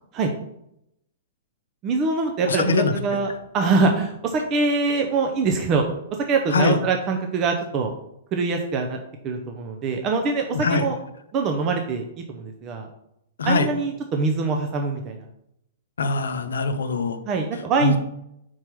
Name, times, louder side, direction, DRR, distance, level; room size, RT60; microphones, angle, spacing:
voice 1, 1.8-5.8 6.3-7.9 8.3-9.0 9.2-10.9 11.3-12.0 12.3-12.9 13.4-15.2 17.3-18.0, right 4 dB, 30° right, 3 dB, 0.7 m, -23 dB
voice 2, 2.4-2.9 6.5-6.8 10.5-10.9 13.4-13.7 16.0-17.2 17.8-18.0, left 3 dB, 70° left, 9 dB, 0.7 m, -22 dB
4.6 x 4.5 x 5.8 m, 0.79 s
figure-of-eight pair, 110°, 0 cm